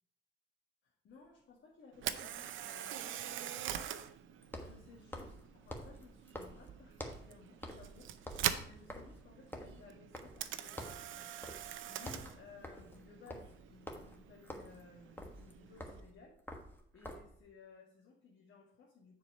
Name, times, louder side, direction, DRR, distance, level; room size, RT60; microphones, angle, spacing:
voice 1, 0.8-4.1 4.6-11.3 11.9-16.4 16.9-19.2, left 4 dB, 70° left, -3 dB, 1.7 m, -59 dB
sound 1, 1.1-1.2 4.4-7.3 7.6-7.9 8.2-10.5 10.8-11.1 11.4-11.7 12.0-17.4, left 1 dB, 10° left, 1.4 m, -48 dB
Camera, 1.9-16.0, right 11 dB, 80° right, 0.6 m, -44 dB
7.2 x 4.8 x 5.3 m, 0.67 s
cardioid pair, 90°, 20 cm